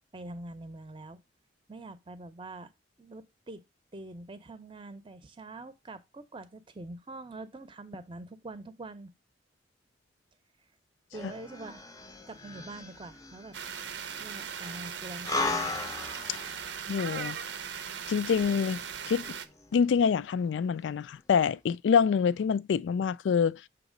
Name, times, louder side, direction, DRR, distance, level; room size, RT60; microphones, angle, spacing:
voice 1, 0.1-1.2 1.7-2.7 3.0-3.6 3.9-9.1 11.1-11.8 12.3-13.6 14.2-15.6, right 2 dB, 30° right, 0.6 m, -44 dB
sound 1, 11.1-20.6 20.9-21.0, left 3 dB, 20° left, 0.5 m, -39 dB
sound 2, 13.5-19.5, right 7 dB, 80° right, 0.7 m, -39 dB
voice 2, 16.9-17.4 18.1-18.8 19.1-19.3 19.7-23.6, left 6 dB, 80° left, 0.3 m, -26 dB
7.2 x 3.0 x 5.0 m
head